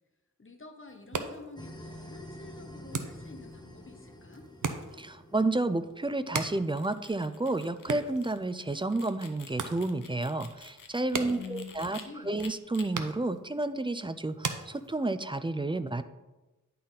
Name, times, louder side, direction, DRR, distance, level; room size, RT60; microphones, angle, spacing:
voice 1, 0.4-4.5 11.2-12.4, left 4 dB, 40° left, 5 dB, 0.9 m, -47 dB
sound 1, 0.9-15.4, right 5 dB, 70° right, 0.7 m, -41 dB
sound 2, 1.6-6.4, left 1 dB, 15° left, 0.8 m, -48 dB
voice 2, 5.0-12.0 12.2-16.0, right 2 dB, 15° right, 12 dB, 0.3 m, -31 dB
sound 3, 6.6-12.0 12.4-12.8, left 5 dB, 80° left, 0.8 m, -50 dB
10.0 x 4.2 x 3.9 m, 1.1 s
wide cardioid pair, 60°, 32 cm